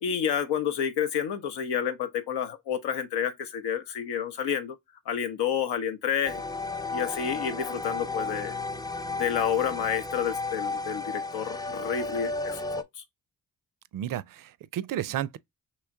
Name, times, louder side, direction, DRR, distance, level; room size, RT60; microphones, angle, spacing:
voice 1, 0.0-4.8 5.1-6.4 6.9-8.6 9.2-13.0, left 8 dB, 85° left, 0.7 m, -30 dB
sound 1, 6.2-12.8, left 3 dB, 10° left, 0.4 m, -33 dB
voice 2, 13.9-15.4, right 11 dB, 55° right, 0.5 m, -32 dB
3.1 x 3.0 x 3.4 m
supercardioid pair, 40°, 39 cm